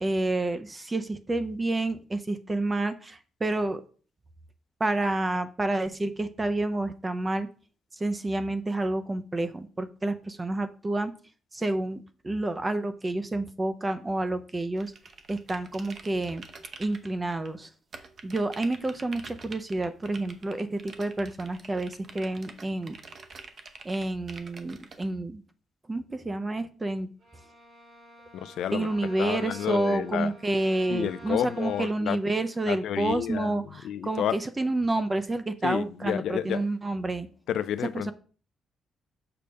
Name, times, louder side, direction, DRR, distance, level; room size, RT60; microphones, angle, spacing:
voice 1, 0.0-3.8 4.8-7.5 8.0-11.1 11.5-14.9 15.3-16.4 16.8-17.7 18.2-23.0 23.8-25.4 25.9-27.1 28.7-37.3 37.9-38.1, right 2 dB, 20° right, 0.5 m, -29 dB
sound 1, 14.8-17.5 17.9-25.0, right 4 dB, 45° right, 0.8 m, -46 dB
Bowed string instrument, 27.2-32.2, equal, 65° right, 2.9 m, -50 dB
voice 2, 28.3-28.9 29.2-30.3 30.9-32.2 32.7-34.4 35.6-36.6 37.5-38.1, left 10 dB, 80° left, 0.4 m, -30 dB
6.8 x 5.1 x 3.4 m
cardioid pair, 130°, 0 cm